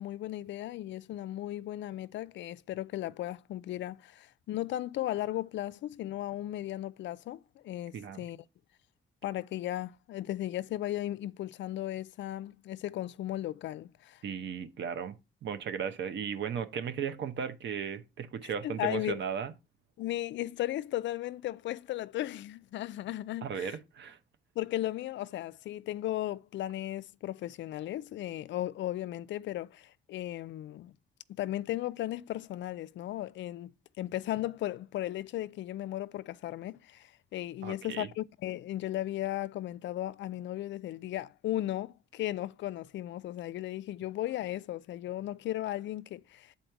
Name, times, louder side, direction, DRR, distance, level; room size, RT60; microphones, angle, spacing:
voice 1, 0.0-8.4 9.2-14.2 18.6-19.2 20.0-23.8 24.6-30.9 31.4-33.7 34.0-46.5, left 14 dB, 70° left, 0.4 m, -36 dB
voice 2, 7.9-8.2 14.2-15.1 15.4-19.5 23.4-24.2 37.6-38.1, right 7 dB, 65° right, 0.9 m, -36 dB
7.7 x 4.2 x 4.5 m
cardioid pair, 90°, 20 cm